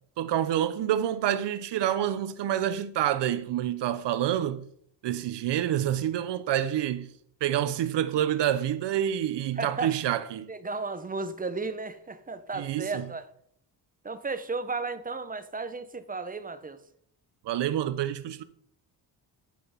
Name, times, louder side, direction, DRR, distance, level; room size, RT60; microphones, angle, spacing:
voice 1, 0.2-4.6 5.0-7.1 7.4-10.5 12.5-13.0 17.5-18.4, right 11 dB, 70° right, 0.7 m, -27 dB
voice 2, 9.6-10.0 10.5-13.3 14.0-16.8, right 3 dB, 20° right, 0.8 m, -34 dB
11.5 x 5.9 x 5.6 m
cardioid pair, 140°, 44 cm